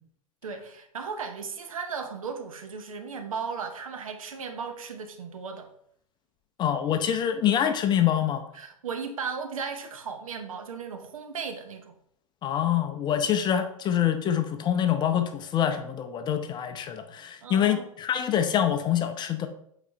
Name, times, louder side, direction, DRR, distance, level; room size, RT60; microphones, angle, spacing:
voice 1, 0.4-5.7 8.5-11.9 17.4-17.9, right 5 dB, 75° right, 6 dB, 1.0 m, -36 dB
voice 2, 6.6-8.4 12.4-19.5, left 9 dB, 25° left, 8 dB, 0.7 m, -25 dB
8.1 x 4.1 x 3.3 m, 0.68 s
figure-of-eight pair, 100°, 18 cm